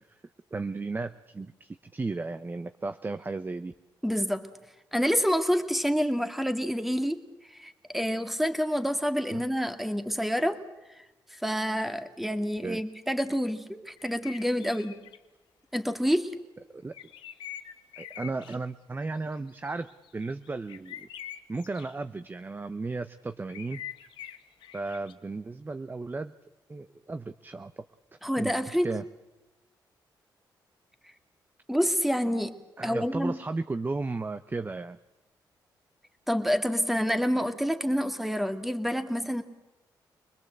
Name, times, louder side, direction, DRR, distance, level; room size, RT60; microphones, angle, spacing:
voice 1, 0.5-3.7 9.3-9.4 12.6-12.8 16.7-16.9 18.0-21.1 21.5-23.8 24.7-26.3 26.7-27.8 28.4-28.5 28.8-29.0 32.8-35.0, right 3 dB, 25° right, 11 dB, 0.8 m, -34 dB
voice 2, 4.0-4.5 4.9-7.2 7.5-10.6 11.3-15.0 15.7-16.3 28.2-28.9 31.7-32.5 32.8-33.4 36.3-39.4, equal, ahead, 7 dB, 2.0 m, -28 dB
sound 1, 14.0-15.2 16.9-18.6 19.3-21.9 23.5-25.1, left 11 dB, 85° left, 1.3 m, -44 dB
24.5 x 20.5 x 7.9 m, 1.0 s
cardioid pair, 80°, 8 cm